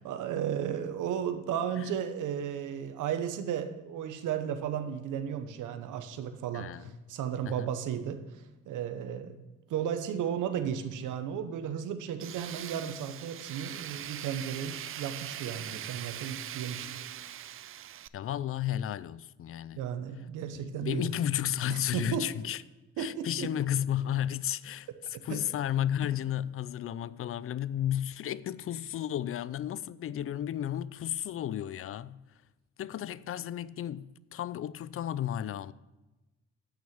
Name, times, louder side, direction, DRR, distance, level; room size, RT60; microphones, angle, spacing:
voice 1, 0.0-9.3 9.7-17.1 19.8-21.1 21.7-22.3 23.0-23.5 25.3-25.4, right 8 dB, 85° right, 1.0 m, -34 dB
voice 2, 6.5-6.9 7.4-7.7 18.1-19.8 20.6-22.6 23.0-24.9 25.2-32.2 32.8-35.7, left 11 dB, 45° left, 0.4 m, -33 dB
Tools, 12.2-18.1, right 11 dB, 45° right, 0.4 m, -41 dB
8.8 x 6.3 x 7.2 m
cardioid pair, 90°, 30 cm